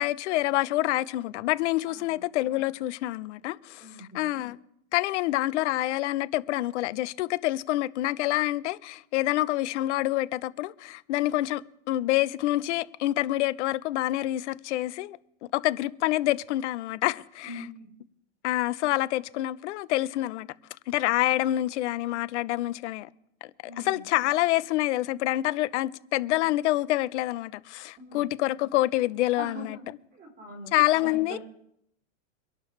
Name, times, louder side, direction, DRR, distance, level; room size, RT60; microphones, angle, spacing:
voice 1, 0.0-4.6 4.9-15.2 15.5-17.7 18.4-20.5 20.9-23.1 23.8-29.8 30.7-31.4, left 16 dB, 65° left, 0.8 m, -27 dB
voice 2, 1.9-2.2 3.8-4.2 17.4-17.9 23.6-24.1 28.0-28.3 29.4-29.8 30.1-31.4, equal, 25° right, 4.1 m, -43 dB
24.5 x 11.5 x 3.3 m
supercardioid pair, 135°, 38 cm